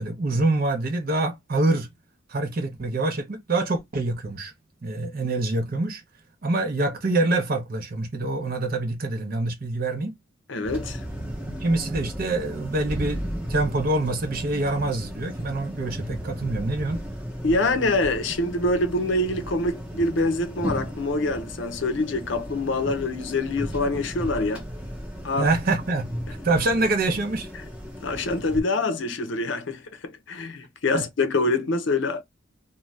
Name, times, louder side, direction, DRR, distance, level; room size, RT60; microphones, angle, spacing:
voice 1, 0.0-1.9 2.3-4.5 4.8-6.0 6.4-10.1 11.4-17.0 25.4-27.5 30.9-31.0, right 2 dB, 45° right, 0.6 m, -25 dB
voice 2, 10.5-11.0 17.4-24.6 25.2-25.5 28.0-32.2, left 2 dB, 65° left, 0.6 m, -25 dB
sound 1, 10.6-28.6, equal, 5° right, 0.7 m, -35 dB
2.6 x 2.2 x 3.2 m
head